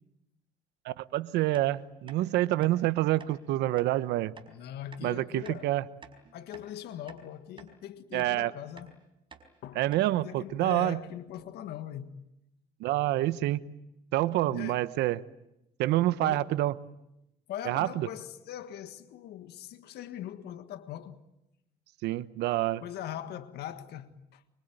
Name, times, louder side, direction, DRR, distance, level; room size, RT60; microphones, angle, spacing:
voice 1, 0.8-4.3 5.0-5.8 8.1-8.5 9.7-11.0 12.8-13.6 14.1-15.2 15.8-16.7 17.7-18.1 22.0-22.8, right 15 dB, 85° right, 1.1 m, -27 dB
sound 1, 1.5-1.7 2.1-2.2 2.6-2.8 3.2-3.3 3.8-3.9 4.4-4.5 4.9-5.1 5.4-5.6 6.0-6.7 7.1-7.2 7.6-7.7 8.2-8.4 8.8-8.9 9.3-9.5 9.9-10.1 10.4-10.5 10.7-10.9, right 5 dB, 30° right, 4.8 m, -51 dB
voice 2, 4.5-5.7 6.3-9.0 9.6-9.8 10.2-12.2 14.5-14.8 16.2-16.5 17.5-21.2 22.8-24.4, left 11 dB, 75° left, 1.7 m, -41 dB
25.5 x 24.5 x 9.2 m
cardioid pair, 110°, 17 cm